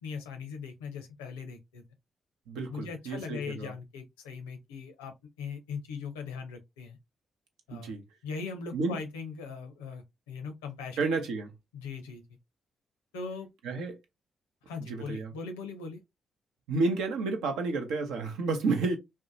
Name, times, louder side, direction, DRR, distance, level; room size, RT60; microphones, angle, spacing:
voice 1, 0.0-1.8 2.7-5.1 5.4-7.0 7.7-7.9 8.2-11.0 11.7-12.2 13.1-13.5 14.7-16.0, left 5 dB, 85° left, 0.5 m, -40 dB
voice 2, 2.5-3.7 7.7-8.0 8.7-9.0 11.0-11.5 13.6-14.0 14.9-15.3 16.7-19.0, right 3 dB, 75° right, 0.6 m, -30 dB
2.7 x 2.1 x 2.5 m
hypercardioid pair, 40°, 0 cm